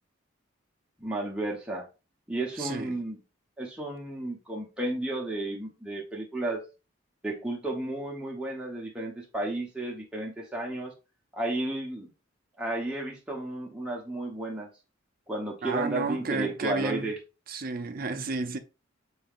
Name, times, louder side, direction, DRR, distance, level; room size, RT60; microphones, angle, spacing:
voice 1, 1.0-1.9 2.3-3.2 3.6-6.7 7.2-10.9 11.3-12.1 12.6-14.7 15.3-17.2, right 1 dB, 5° right, 0.8 m, -33 dB
voice 2, 2.6-3.0 15.6-17.1 17.5-18.6, right 4 dB, 45° right, 0.5 m, -32 dB
5.5 x 4.0 x 2.4 m
head